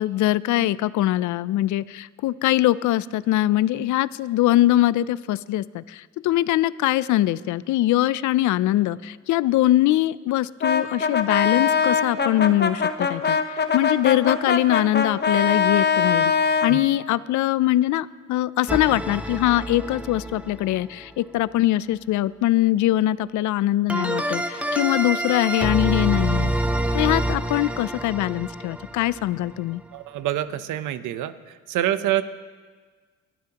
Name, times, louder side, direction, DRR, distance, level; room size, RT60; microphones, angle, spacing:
voice 1, 0.0-16.3 16.6-26.5 26.9-29.8, left 14 dB, 75° left, 18 dB, 0.5 m, -22 dB
Brass instrument, 10.6-16.8, left 6 dB, 35° left, 1.0 m, -22 dB
sound 1, 18.7-20.8 23.9-29.6, right 1 dB, 5° right, 0.7 m, -27 dB
voice 2, 29.9-32.2, right 12 dB, 80° right, 12 dB, 0.8 m, -26 dB
23.5 x 12.5 x 2.9 m, 1.5 s
cardioid pair, 90°, 30 cm